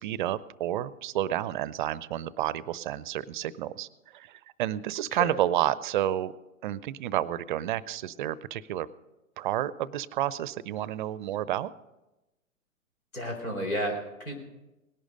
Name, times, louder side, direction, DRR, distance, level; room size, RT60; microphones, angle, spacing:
voice 1, 0.0-6.3 6.6-8.9 9.4-11.7, right 12 dB, 40° right, 19 dB, 0.5 m, -30 dB
voice 2, 13.1-14.5, equal, 85° left, 3 dB, 4.2 m, -32 dB
18.5 x 11.0 x 5.2 m, 1.0 s
figure-of-eight pair, 115°, 41 cm